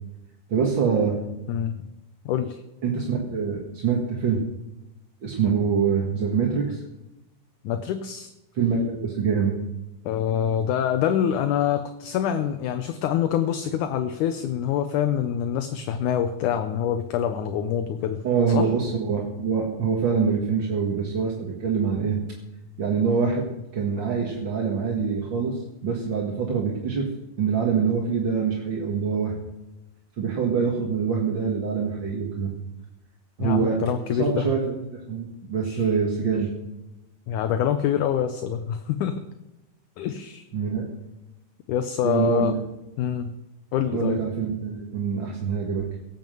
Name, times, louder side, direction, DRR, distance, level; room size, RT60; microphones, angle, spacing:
voice 1, 0.5-1.2 2.8-4.4 5.2-6.8 8.5-9.5 18.2-22.2 22.8-23.5 23.7-27.1 27.4-29.3 30.2-32.5 33.4-33.8 34.1-36.5 40.5-40.9 42.0-42.6 43.9-45.9, right 6 dB, 45° right, -1 dB, 1.7 m, -25 dB
voice 2, 2.3-2.6 7.6-8.3 10.1-18.2 18.5-18.7 33.4-34.5 35.7-35.8 37.3-39.3 40.0-40.5 41.7-42.5 43.0-43.3 43.7-44.2, left 9 dB, 75° left, 8 dB, 2.0 m, -25 dB
18.0 x 7.3 x 7.7 m, 0.97 s
omnidirectional pair, 4.1 m